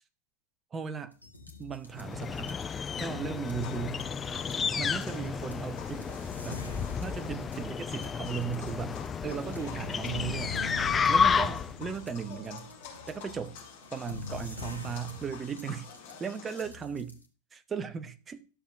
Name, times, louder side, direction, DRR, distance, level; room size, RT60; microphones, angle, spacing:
voice 1, 0.7-1.1 1.6-2.6 3.0-4.0 4.8-6.2 6.4-6.6 7.0-9.0 9.2-10.6 11.1-12.7 13.1-13.6 13.9-15.9 16.2-17.1 17.7-18.4, right 7 dB, 20° right, 0.7 m, -36 dB
sound 1, 1.1-17.3, left 2 dB, 85° left, 1.0 m, -45 dB
sound 2, 2.0-11.8, left 6 dB, 20° left, 0.3 m, -31 dB
sound 3, 3.4-16.7, left 7 dB, 45° left, 4.5 m, -50 dB
12.5 x 6.9 x 2.5 m
figure-of-eight pair, 90°, 0 cm